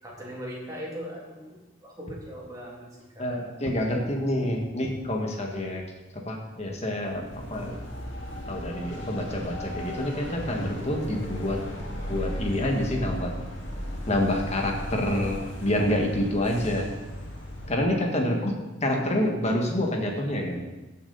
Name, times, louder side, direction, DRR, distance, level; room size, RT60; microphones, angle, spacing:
voice 1, 0.0-2.9 3.1-3.6 18.2-18.6, equal, 20° right, -5 dB, 3.2 m, -40 dB
voice 2, 3.2-5.8 6.3-7.2 7.5-7.8 8.5-11.6 12.1-13.4 14.1-16.9 17.7-18.5 18.8-20.7, left 1 dB, 35° left, 1 dB, 1.8 m, -27 dB
sound 1, 7.0-17.7, equal, 65° left, 2.4 m, -36 dB
15.5 x 7.4 x 4.1 m, 1.1 s
head